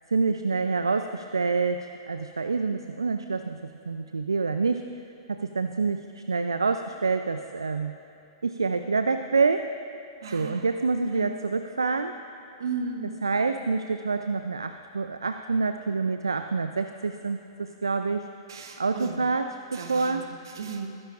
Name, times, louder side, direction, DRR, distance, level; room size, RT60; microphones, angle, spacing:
voice 1, 0.1-4.9 5.3-8.0 8.4-9.7 10.3-12.2 13.2-18.3 18.8-20.3, right 4 dB, 80° right, 9 dB, 0.4 m, -27 dB
voice 2, 10.2-10.7 11.1-11.4 12.6-13.2 18.5-19.2 19.7-20.9, right 5 dB, 65° right, 4 dB, 1.3 m, -35 dB
21.0 x 11.0 x 2.5 m, 2.9 s
figure-of-eight pair, 105°, 2 cm